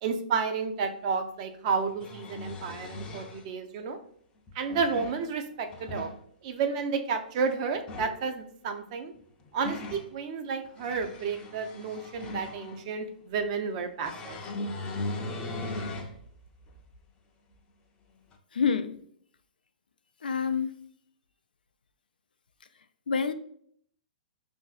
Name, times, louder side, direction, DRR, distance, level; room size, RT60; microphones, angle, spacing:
voice 1, 0.0-4.0 4.5-6.1 6.4-9.1 9.5-14.4, right 5 dB, 45° right, 0.5 m, -31 dB
sound 1, 0.8-0.9 1.8-3.4 4.5-5.2 5.7-6.2 7.7-8.2 9.2-10.1 10.6-12.8 14.0-16.2 16.7-16.8 18.3-18.4, left 2 dB, 20° left, 0.5 m, -38 dB
voice 2, 18.5-19.0 20.2-20.7 23.1-23.3, left 6 dB, 80° left, 0.3 m, -27 dB
5.4 x 2.5 x 2.4 m
hypercardioid pair, 120°, 5 cm